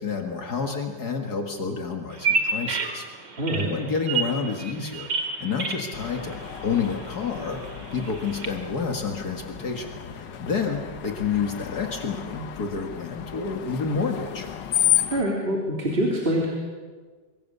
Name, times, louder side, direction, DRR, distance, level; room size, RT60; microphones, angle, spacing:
voice 1, 0.0-3.1 3.6-6.4 6.6-7.6 7.9-14.5, left 5 dB, 60° left, 3 dB, 2.3 m, -29 dB
Bird vocalization bird call bird song, 2.1-8.5, right 4 dB, 75° right, 2.9 m, -31 dB
voice 2, 3.4-3.7 15.1-16.5, right 1 dB, 30° right, -3 dB, 3.6 m, -25 dB
Screech, 5.9-15.2, left 12 dB, 75° left, 1.7 m, -32 dB
24.0 x 23.5 x 6.8 m, 1.4 s
omnidirectional pair, 1.9 m